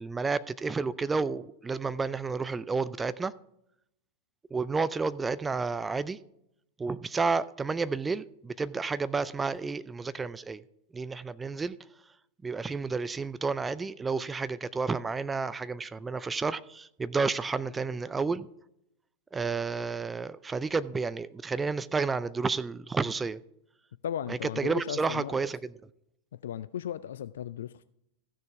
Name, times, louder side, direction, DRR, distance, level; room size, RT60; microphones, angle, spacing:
voice 1, 0.0-3.3 4.5-6.2 6.8-10.6 10.9-11.8 12.4-18.5 19.3-23.4 24.3-25.7, right 4 dB, 15° right, 0.4 m, -31 dB
voice 2, 24.0-25.4 26.4-27.8, left 10 dB, 60° left, 0.3 m, -36 dB
15.0 x 6.7 x 4.6 m
figure-of-eight pair, 90°, 0 cm